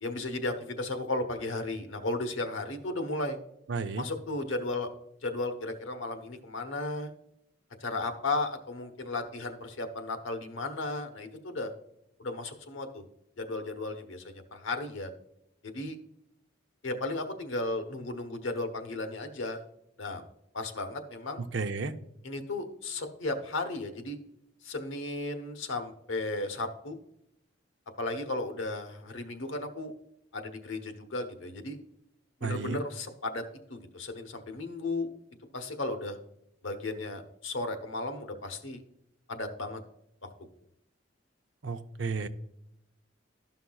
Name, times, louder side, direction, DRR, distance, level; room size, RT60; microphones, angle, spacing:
voice 1, 0.0-3.4 4.0-4.9 5.2-7.1 7.8-11.7 12.2-13.0 13.4-15.1 15.6-16.0 16.8-19.6 20.0-20.2 20.5-21.4 22.2-24.2 24.6-27.0 28.0-29.9 30.3-31.8 32.4-33.4 33.7-35.1 35.5-36.2 36.6-38.8 39.3-39.8 40.2-40.3, left 2 dB, 85° left, 6 dB, 1.1 m, -35 dB
voice 2, 3.7-4.1 21.4-21.9 32.4-32.8 41.6-42.3, right 4 dB, 70° right, 9 dB, 0.6 m, -32 dB
12.5 x 5.8 x 2.3 m, 0.79 s
head